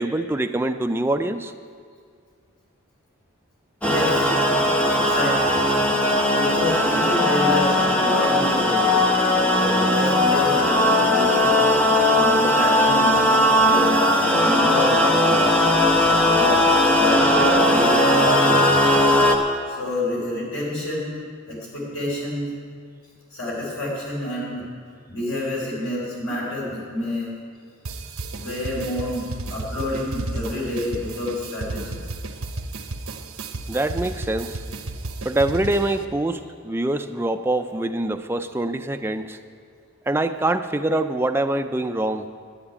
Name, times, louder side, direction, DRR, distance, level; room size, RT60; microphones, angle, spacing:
voice 1, 0.0-1.5 8.2-8.4 33.7-34.6 35.2-39.4 40.1-42.3, right 1 dB, 10° right, 7 dB, 0.3 m, -24 dB
voice 2, 3.8-4.3 4.9-5.6 6.0-8.9 9.5-11.7 12.1-14.0 14.4-15.6 16.3-19.0 19.7-21.2 21.5-22.5 23.3-24.6 25.1-27.3 28.3-29.2 29.5-32.0, left 1 dB, 70° left, -4 dB, 3.7 m, -28 dB
sound 1, 3.8-19.4, left 1 dB, 5° left, 0.9 m, -18 dB
sound 2, 27.8-36.0, right 2 dB, 75° right, 0.9 m, -33 dB
11.0 x 8.0 x 9.8 m, 2.2 s
head